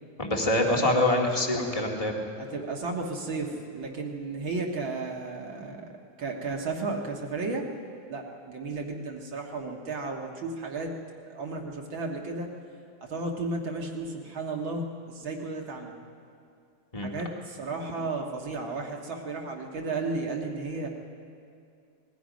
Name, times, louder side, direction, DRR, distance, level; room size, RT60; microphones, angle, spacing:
voice 1, 0.2-2.1 16.9-17.1, left 1 dB, 15° left, 0 dB, 1.4 m, -25 dB
voice 2, 2.4-5.9 6.2-7.7 8.1-12.5 13.0-16.0 17.0-20.9, right 3 dB, 45° right, 1 dB, 2.0 m, -34 dB
27.5 x 20.5 x 5.2 m, 2.4 s
omnidirectional pair, 3.4 m